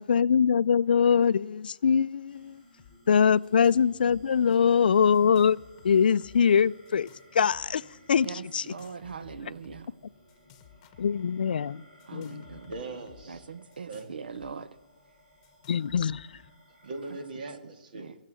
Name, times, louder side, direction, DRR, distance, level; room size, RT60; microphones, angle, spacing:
voice 1, 0.0-2.6 3.1-5.6 5.8-8.3 8.5-8.6 11.0-11.8 12.1-12.5 15.7-16.4, left 7 dB, 70° left, 0.4 m, -23 dB
sound 1, 2.3-17.2, equal, 15° right, 5.4 m, -58 dB
sound 2, 2.8-3.0 3.2-3.8 4.1-4.6 5.1-6.5 6.9-7.8 8.6-9.8 10.3-11.4 12.0-14.5 14.8-14.9 15.4-16.5, left 9 dB, 30° left, 1.1 m, -56 dB
voice 2, 8.2-10.0 12.1-12.7 13.3-14.8 17.6-18.2, right 5 dB, 80° right, 0.7 m, -42 dB
voice 3, 12.7-13.5 13.9-14.1 16.8-18.1, right 3 dB, 60° right, 2.2 m, -40 dB
19.0 x 7.3 x 8.9 m
hypercardioid pair, 155°, 5 cm